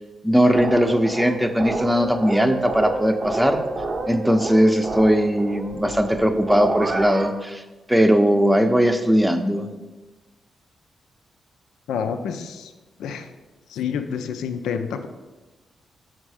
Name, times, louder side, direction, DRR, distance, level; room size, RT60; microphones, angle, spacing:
voice 1, 0.2-3.6 4.1-7.6 7.9-9.7, equal, 5° right, 7 dB, 0.6 m, -19 dB
Party Tonight, 0.5-7.3, right 2 dB, 45° right, 0.7 m, -29 dB
voice 2, 11.9-12.7 13.0-13.3 13.7-15.1, left 7 dB, 75° left, 8 dB, 0.4 m, -28 dB
6.1 x 4.4 x 4.9 m, 1.2 s
hypercardioid pair, 40°, 0 cm